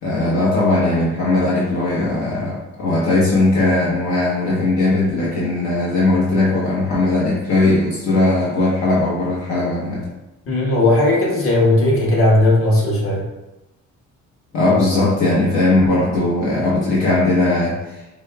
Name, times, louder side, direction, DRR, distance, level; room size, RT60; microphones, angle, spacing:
voice 1, 0.0-10.1 14.5-18.0, left 2 dB, 70° left, -6 dB, 1.0 m, -18 dB
voice 2, 10.4-13.3, left 1 dB, 45° left, -4 dB, 1.3 m, -16 dB
5.1 x 2.3 x 2.3 m, 1.0 s
cardioid pair, 90°, 30 cm